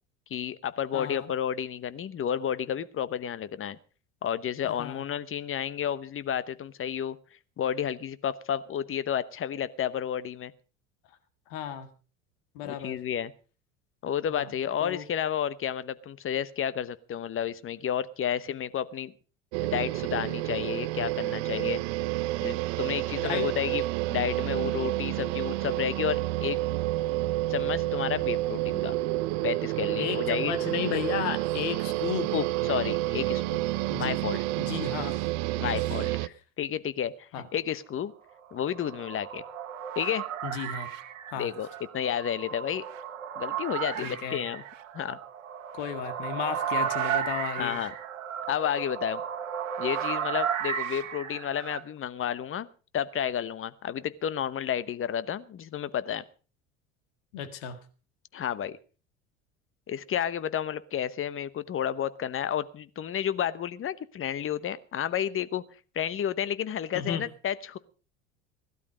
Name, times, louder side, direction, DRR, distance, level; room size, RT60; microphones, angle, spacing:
voice 1, 0.3-3.8 4.2-7.2 7.6-10.5 12.6-13.3 14.0-19.1 19.6-21.8 22.4-23.8 24.1-26.6 27.5-29.0 29.4-30.5 32.3-33.6 33.9-34.4 35.6-38.1 38.5-39.4 40.0-40.2 41.3-41.7 41.9-42.8 43.4-44.6 44.9-45.2 47.6-47.9 48.5-49.2 49.8-52.7 52.9-56.2 58.3-58.8 59.9-65.6 65.9-67.8, left 9 dB, 35° left, 16 dB, 1.1 m, -31 dB
voice 2, 0.9-1.3 4.6-5.0 11.5-11.9 12.5-13.0 14.3-14.5 14.8-15.0 23.2-23.5 30.0-32.3 33.9-34.2 34.6-35.3 35.6-35.8 37.3-37.5 40.4-40.9 41.3-41.5 44.0-44.4 45.7-47.8 57.3-57.8 66.9-67.2, left 8 dB, 70° left, 9 dB, 2.0 m, -34 dB
sound 1, 19.5-36.3, right 17 dB, 60° right, 0.8 m, -29 dB
sound 2, 38.4-51.8, right 8 dB, 80° right, 1.7 m, -34 dB
16.5 x 12.0 x 5.1 m, 0.37 s
hypercardioid pair, 70°, 38 cm